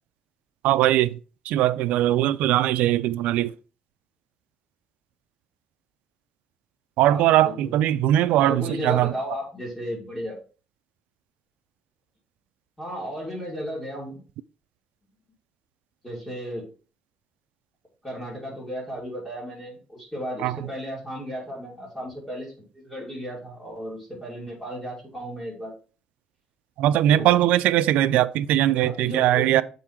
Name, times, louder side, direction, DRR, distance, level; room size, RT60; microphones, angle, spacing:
voice 1, 0.6-1.2 1.5-3.5 7.0-9.1 20.4-20.6 26.8-29.6, right 13 dB, 85° right, 0.4 m, -20 dB
voice 2, 7.1-7.7 8.3-10.4 12.8-14.2 16.0-16.7 18.0-25.7 27.1-27.4 28.8-29.6, equal, 10° left, 2.6 m, -34 dB
7.1 x 3.8 x 4.4 m
cardioid pair, 175°, 2 cm